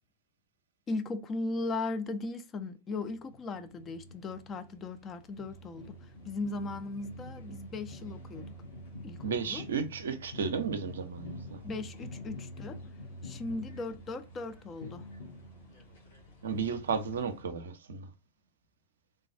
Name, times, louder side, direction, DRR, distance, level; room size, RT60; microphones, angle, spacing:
voice 1, 0.9-8.6 9.0-9.6 11.6-12.9 13.2-15.1, left 3 dB, 25° left, 0.5 m, -37 dB
sound 1, 2.9-17.4, left 1 dB, 60° left, 1.3 m, -47 dB
voice 2, 9.2-11.6 16.4-18.1, right 6 dB, 65° right, 0.5 m, -33 dB
3.2 x 2.3 x 4.3 m
figure-of-eight pair, 90°, 0 cm